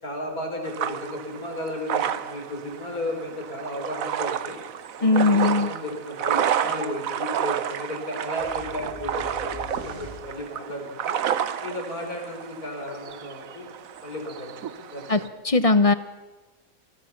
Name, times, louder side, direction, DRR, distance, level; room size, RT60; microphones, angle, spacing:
voice 1, 0.0-4.6 5.0-11.2 11.6-13.7 14.0-15.4, left 1 dB, 90° left, 2 dB, 5.1 m, -34 dB
sound 1, 0.6-15.3, right 9 dB, 70° right, 1.3 m, -31 dB
voice 2, 5.0-5.7 15.1-15.2 15.4-15.9, left 3 dB, 30° left, 13 dB, 0.7 m, -19 dB
sound 2, 8.4-10.7, left 2 dB, 15° left, 6.9 m, -42 dB
27.5 x 20.0 x 5.8 m, 1.2 s
omnidirectional pair, 1.5 m